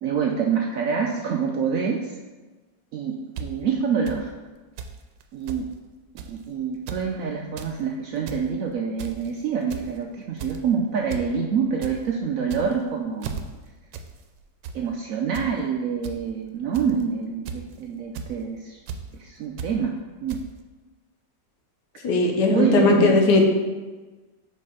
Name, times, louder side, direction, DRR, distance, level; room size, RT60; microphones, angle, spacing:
voice 1, 0.0-2.2 2.9-3.1 3.4-4.3 5.3-5.7 6.1-13.3 14.7-18.8 19.2-19.9 20.2-20.4 22.5-23.2, right 6 dB, 70° right, 1 dB, 0.8 m, -26 dB
sound 1, 3.4-3.5 4.1-4.2 4.8-5.0 5.2-5.3 5.5-5.6 6.2-6.4 6.7-7.0 7.4-7.7 8.1-8.4 9.0-9.3 9.7-10.0 10.4-10.7 11.1-11.3 11.6-11.9 12.4-12.8 13.2-13.4 13.9-14.1 14.4-14.8 15.3-15.5 16.0-16.1 16.7-17.0 17.5-17.7 18.2-18.3 18.9-19.0 19.6-19.7 20.3-20.4, right 6 dB, 85° right, 1.3 m, -34 dB
voice 2, 22.0-23.4, left 3 dB, 75° left, 2 dB, 1.4 m, -18 dB
5.2 x 4.2 x 5.4 m, 1.3 s
omnidirectional pair, 1.9 m